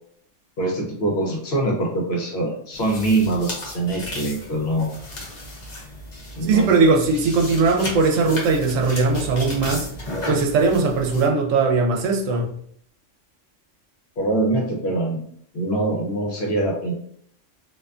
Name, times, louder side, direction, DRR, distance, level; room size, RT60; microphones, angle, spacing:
voice 1, 0.6-4.9 6.3-6.7 14.2-15.2 15.5-16.9, right 2 dB, 60° left, 0.9 m, -23 dB
sound 1, 2.7-11.3, left 1 dB, 45° left, 0.6 m, -34 dB
voice 2, 6.4-9.9 10.3-12.5, right 4 dB, 85° right, 0.9 m, -19 dB
2.5 x 2.2 x 2.4 m
omnidirectional pair, 1.3 m